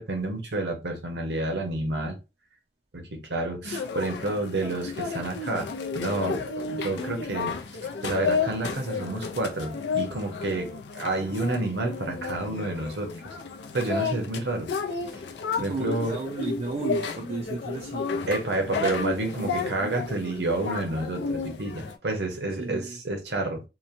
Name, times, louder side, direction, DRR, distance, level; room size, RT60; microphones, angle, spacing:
voice 1, 0.0-2.2 2.9-7.6 8.0-13.1 13.7-14.7 15.1-15.2 15.6-16.1 18.3-23.6, right 2 dB, 70° right, 0.8 m, -29 dB
sound 1, 3.6-22.0, left 4 dB, 75° left, 0.4 m, -32 dB
voice 2, 15.5-18.1 22.6-23.0, right 3 dB, 40° right, 0.4 m, -34 dB
2.9 x 2.1 x 2.5 m
head